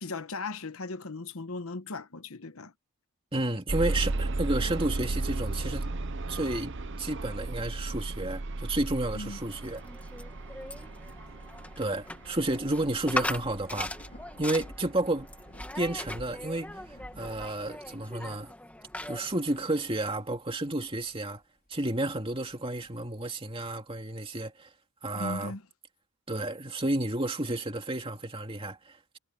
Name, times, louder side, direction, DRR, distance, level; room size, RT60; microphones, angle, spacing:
voice 1, 0.0-2.7 9.1-9.4 25.2-25.6, left 3 dB, 70° left, 1.1 m, -37 dB
voice 2, 3.3-5.9 6.3-6.7 7.0-9.8 11.8-13.9 14.4-15.3 15.7-18.5 19.1-21.4 21.7-24.7 25.0-25.5 26.3-29.2, right 1 dB, 25° right, 2.6 m, -31 dB
sound 1, 3.7-15.6 16.3-16.4 16.9-17.0, right 2 dB, 55° right, 0.9 m, -35 dB
sound 2, 9.2-20.2, left 1 dB, 5° left, 2.1 m, -40 dB
Thunder / Rain, 12.7-21.3 21.9-23.2, equal, 40° left, 4.9 m, -51 dB
head